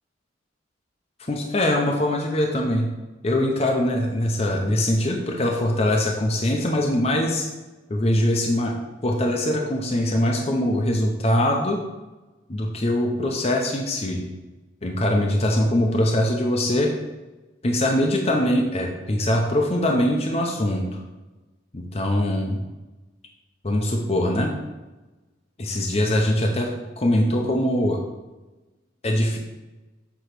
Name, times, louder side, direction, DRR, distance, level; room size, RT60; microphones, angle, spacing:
voice 1, 1.3-2.9 3.2-7.5 7.9-8.7 9.0-11.8 12.5-14.3 14.8-16.9 17.6-21.0 21.7-22.6 23.6-24.5 25.6-28.0 29.0-29.4, left 1 dB, 30° left, 1 dB, 0.7 m, -22 dB
8.0 x 3.1 x 6.0 m, 1.1 s
head